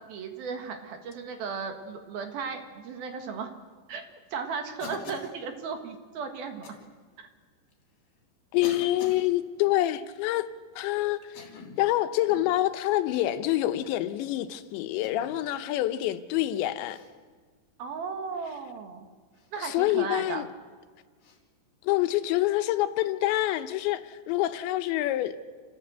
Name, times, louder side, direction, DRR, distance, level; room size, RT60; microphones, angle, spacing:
voice 1, 0.1-3.5 3.9-4.0 4.3-6.7 7.2-7.3 17.8-19.1 19.5-20.5, right 5 dB, 60° right, 3.4 m, -35 dB
Cough, 4.8-5.4 6.6-6.8 7.7-7.8 8.6-9.3 11.2-11.8 12.3-12.5 13.6-14.0 15.0-15.4 16.9-17.1 19.3-19.5 21.2-21.4, left 4 dB, 60° left, 4.8 m, -44 dB
voice 2, 8.5-10.5 10.8-11.4 11.8-17.0 19.6-20.5 21.8-25.3, left 15 dB, 85° left, 3.2 m, -26 dB
29.0 x 14.5 x 8.0 m
omnidirectional pair, 5.1 m